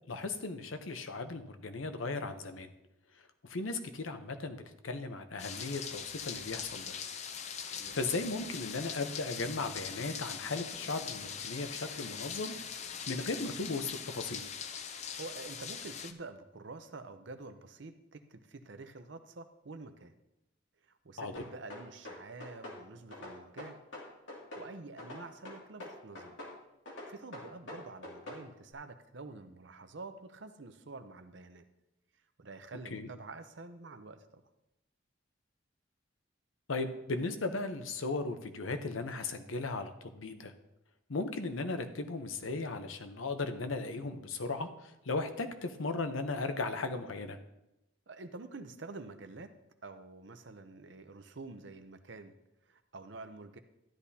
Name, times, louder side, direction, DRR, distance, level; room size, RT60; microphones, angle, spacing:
voice 1, 0.1-2.7 3.4-7.0 7.7-14.5 21.2-21.4 32.9-33.1 36.7-40.5 41.1-47.4, left 3 dB, 90° left, 8 dB, 0.8 m, -37 dB
sound 1, 5.4-16.1, left 7 dB, 35° left, 0.4 m, -42 dB
voice 2, 15.1-20.1 20.9-23.8 24.6-26.4 27.1-31.6 32.4-34.4 48.1-49.5 49.8-52.3 52.7-53.6, right 3 dB, 65° right, 9 dB, 0.7 m, -48 dB
sound 2, 21.3-22.8 23.1-24.7 25.0-26.6 26.9-28.4, left 2 dB, 70° left, 2.5 m, -45 dB
13.5 x 10.5 x 2.8 m, 0.91 s
head